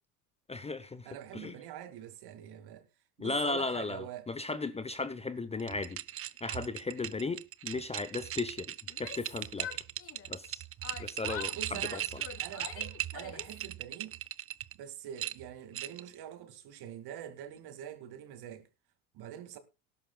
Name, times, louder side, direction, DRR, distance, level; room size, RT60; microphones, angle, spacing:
voice 1, 0.5-1.1 1.3-1.6 3.2-6.0 6.4-9.8 10.3-10.6 11.0-12.2, left 3 dB, 15° left, 0.8 m, -36 dB
voice 2, 1.1-2.9 3.2-4.3 11.5-12.0 12.4-14.2 14.8-18.7 19.1-19.6, right 10 dB, 50° right, 2.3 m, -45 dB
sound 1, 5.6-14.7 15.2-16.1, right 12 dB, 30° right, 0.6 m, -39 dB
Yell, 8.9-10.5 10.8-13.6, left 9 dB, 30° left, 1.2 m, -45 dB
18.5 x 11.5 x 2.3 m
hypercardioid pair, 85°, 48 cm